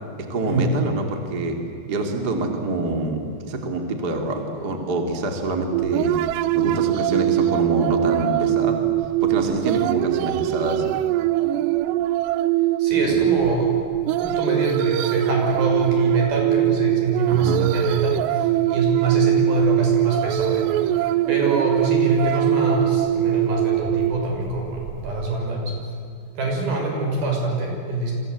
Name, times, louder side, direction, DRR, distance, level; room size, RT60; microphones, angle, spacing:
voice 1, 0.3-1.6 1.9-6.1 6.5-8.8 9.2-10.9 13.0-13.2 17.3-17.6, right 2 dB, 30° right, 4 dB, 2.3 m, -26 dB
sound 1, 5.7-25.3, right 13 dB, 85° right, 2.9 m, -22 dB
voice 2, 12.8-13.8 14.2-25.7 26.4-28.1, right 2 dB, 60° right, 0 dB, 7.9 m, -24 dB
29.0 x 25.0 x 8.2 m, 2.6 s
omnidirectional pair, 4.9 m